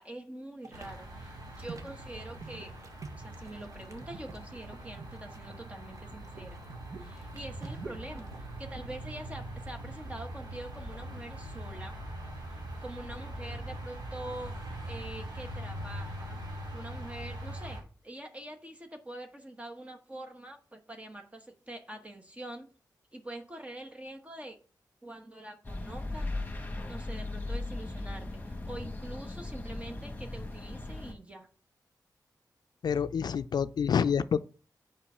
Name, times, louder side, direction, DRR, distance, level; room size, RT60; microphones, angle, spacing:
voice 1, 0.0-2.8 3.2-6.6 7.0-12.0 12.5-14.6 14.8-16.4 16.7-22.7 23.1-24.6 25.0-26.3 26.9-31.5 33.3-33.4, right 1 dB, 20° right, 1.1 m, -45 dB
sound 1, 0.6-8.5, right 4 dB, 50° right, 1.2 m, -48 dB
sound 2, 0.7-17.8, right 1 dB, 80° right, 3.2 m, -42 dB
sound 3, 25.6-31.1, left 2 dB, 20° left, 1.5 m, -37 dB
voice 2, 32.8-34.4, left 7 dB, 75° left, 0.4 m, -27 dB
6.9 x 5.3 x 5.5 m
wide cardioid pair, 85°, 7 cm